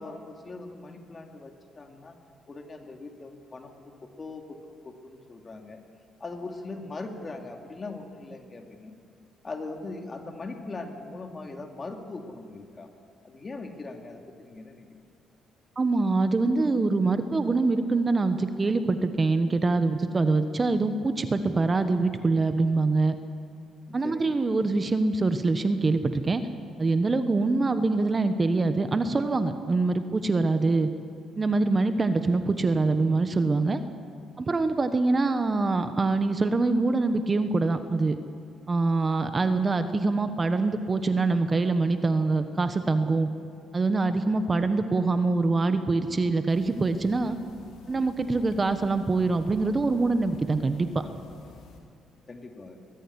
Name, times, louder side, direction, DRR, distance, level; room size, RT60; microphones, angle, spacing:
voice 1, 0.0-2.2 2.5-5.8 6.2-8.9 9.4-12.9 13.2-14.9 23.9-24.3 52.3-52.8, left 3 dB, 35° left, 4 dB, 2.6 m, -40 dB
voice 2, 15.8-23.2 23.9-26.4 26.8-30.9 31.3-33.8 34.4-38.2 38.7-43.3 43.7-47.4 47.9-50.9, right 3 dB, 30° right, 9 dB, 1.3 m, -24 dB
sound 1, 46.5-51.8, left 3 dB, 80° left, 3.1 m, -50 dB
21.5 x 14.5 x 9.9 m, 2.3 s
cardioid pair, 90°, 0 cm